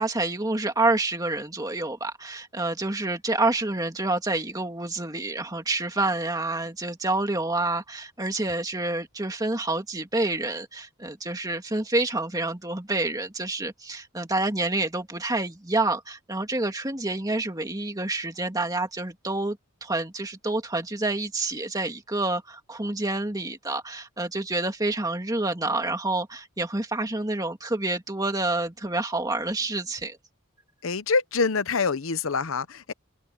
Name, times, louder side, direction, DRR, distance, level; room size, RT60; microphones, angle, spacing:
voice 1, 0.0-30.2, right 2 dB, 15° right, 2.3 m, -28 dB
voice 2, 30.8-32.9, left 4 dB, 70° left, 0.8 m, -25 dB
head